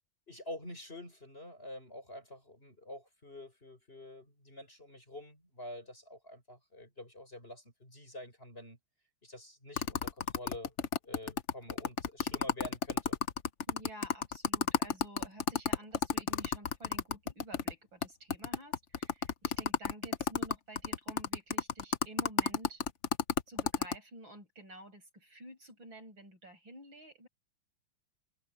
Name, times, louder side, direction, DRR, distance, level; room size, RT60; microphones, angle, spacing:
voice 1, 0.3-8.8 9.2-10.7 11.0-13.2, left 1 dB, 25° left, 6.8 m, -47 dB
sound 1, 9.8-17.7 18.0-18.1 18.3-24.0, left 7 dB, 70° left, 0.6 m, -31 dB
voice 2, 13.7-22.8 23.5-27.3, right 1 dB, 60° right, 8.2 m, -51 dB
omnidirectional pair, 2.4 m